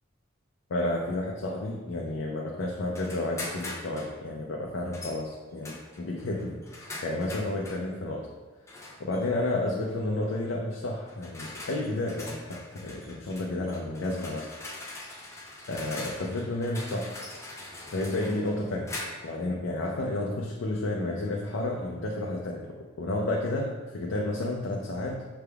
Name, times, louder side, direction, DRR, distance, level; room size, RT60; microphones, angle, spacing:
voice 1, 0.7-8.3 9.0-14.5 15.7-17.1 17.9-18.9 19.2-25.2, left 2 dB, 80° left, -2 dB, 0.5 m, -31 dB
sound 1, 2.9-4.2 4.9-5.2 5.6-7.8 8.7-9.2 10.2-10.4 11.1-19.4, left 2 dB, 15° left, 0.5 m, -42 dB
5.8 x 3.4 x 2.3 m, 1.2 s
head